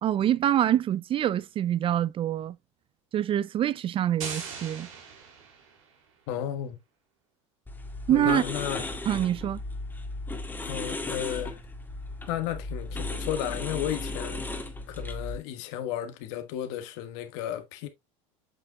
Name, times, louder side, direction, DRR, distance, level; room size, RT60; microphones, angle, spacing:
voice 1, 0.0-2.6 3.1-4.9 8.1-8.4 9.1-9.6, right 11 dB, 35° right, 0.4 m, -25 dB
sound 1, 4.2-6.0, right 6 dB, 85° right, 2.8 m, -40 dB
voice 2, 6.3-6.8 8.1-8.9 10.6-11.6 12.3-14.4 14.9-17.9, left 11 dB, 70° left, 1.5 m, -33 dB
sound 2, 7.7-15.4, left 2 dB, 10° left, 1.8 m, -36 dB
8.3 x 5.7 x 2.3 m
supercardioid pair, 95°, 16 cm